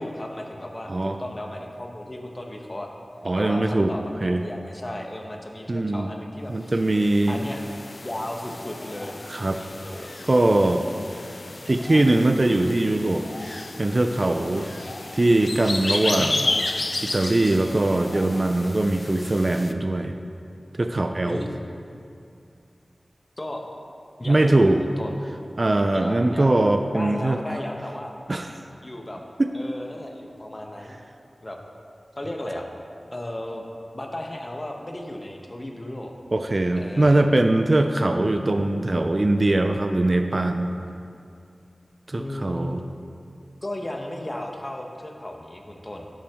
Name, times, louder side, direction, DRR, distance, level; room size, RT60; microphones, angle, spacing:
voice 1, 0.0-2.9 3.4-6.8 7.3-7.6 8.0-9.2 9.7-10.1 21.2-21.5 23.4-23.6 24.2-25.2 25.9-26.5 26.9-28.1 28.8-29.2 29.5-31.0 31.4-31.6 32.2-32.7 33.1-33.7 33.9-36.1 36.7-37.2 42.2-42.7 43.6-46.1, left 1 dB, 30° left, 2 dB, 0.9 m, -35 dB
voice 2, 0.9-1.2 3.2-3.9 4.2-4.4 5.7-6.1 6.5-7.4 9.3-9.6 10.3-10.8 11.7-14.7 15.1-16.6 17.0-20.2 20.7-21.4 24.2-24.9 25.6-27.4 28.3-28.5 29.4-29.5 36.3-40.7 42.1-42.8, right 2 dB, 45° right, 6 dB, 0.4 m, -21 dB
sound 1, 6.7-19.7, left 2 dB, 55° left, 0.4 m, -33 dB
11.0 x 5.8 x 3.5 m, 2.5 s
wide cardioid pair, 55°, 0 cm